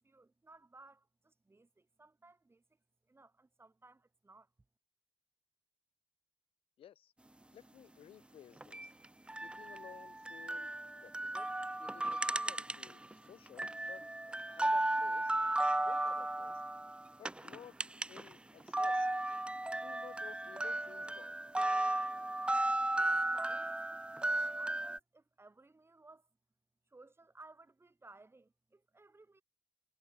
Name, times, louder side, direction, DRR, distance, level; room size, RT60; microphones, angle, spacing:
voice 1, 0.0-2.6 3.1-4.5 22.9-26.3 26.9-29.4, right 3 dB, 25° right, 6.5 m, -59 dB
voice 2, 6.8-7.1 7.5-8.9 9.4-10.8 11.0-11.5 11.8-15.3 15.8-16.6 17.2-17.7 18.1-19.1 19.8-21.4, left 10 dB, 85° left, 5.7 m, -56 dB
sound 1, 8.6-13.1 13.5-18.3 18.6-25.0, right 1 dB, 10° right, 0.5 m, -35 dB
cardioid pair, 65°, 9 cm